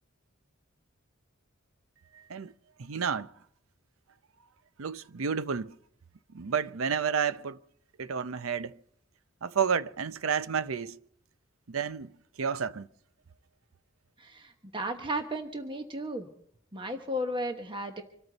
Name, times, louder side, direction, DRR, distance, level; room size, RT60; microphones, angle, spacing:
voice 1, 2.1-2.5 2.8-3.3 4.8-5.7 6.3-7.6 8.0-8.8 9.4-11.0 11.7-12.1 12.4-12.9, right 6 dB, 80° right, 0.6 m, -30 dB
voice 2, 14.2-16.3 16.7-18.0, equal, 25° right, 1.1 m, -34 dB
25.5 x 13.5 x 4.0 m
head